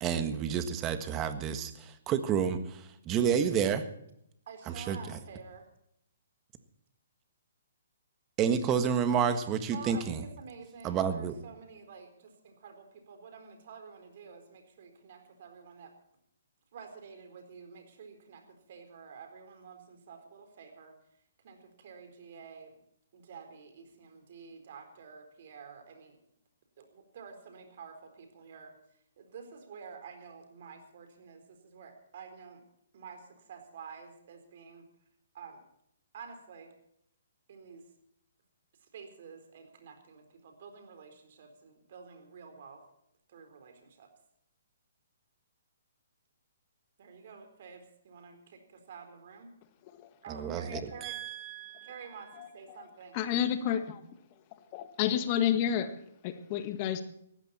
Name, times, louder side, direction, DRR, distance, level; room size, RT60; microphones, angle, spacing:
voice 1, 0.0-3.9 4.7-5.2 8.4-10.2 10.8-11.3 50.3-52.0, right 7 dB, 20° right, 10 dB, 1.5 m, -30 dB
voice 2, 4.5-5.7 9.7-15.9 16.7-20.9 21.4-22.8 23.1-26.2 26.8-28.8 29.2-32.6 32.9-34.9 35.3-35.6 36.1-36.7 37.5-37.9 38.8-42.8 43.3-44.1 47.0-49.5 50.2-51.2 51.8-53.1, right 6 dB, 55° right, 6 dB, 4.2 m, -49 dB
voice 3, 52.4-52.9 53.1-54.0 54.5-57.0, left 9 dB, 35° left, 10 dB, 1.6 m, -31 dB
18.0 x 14.5 x 4.3 m, 0.75 s
hypercardioid pair, 150°, 0 cm